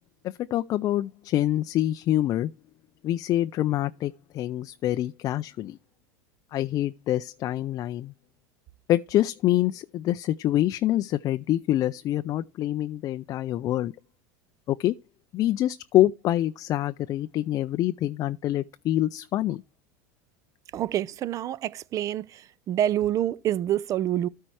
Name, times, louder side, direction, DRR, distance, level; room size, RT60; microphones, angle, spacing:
voice 1, 0.2-2.5 3.0-5.8 6.5-8.1 8.9-13.9 14.7-14.9 15.3-19.6, left 13 dB, 40° left, 0.4 m, -26 dB
voice 2, 20.7-24.3, right 11 dB, 35° right, 0.5 m, -27 dB
13.0 x 4.4 x 4.7 m
supercardioid pair, 120°, 9 cm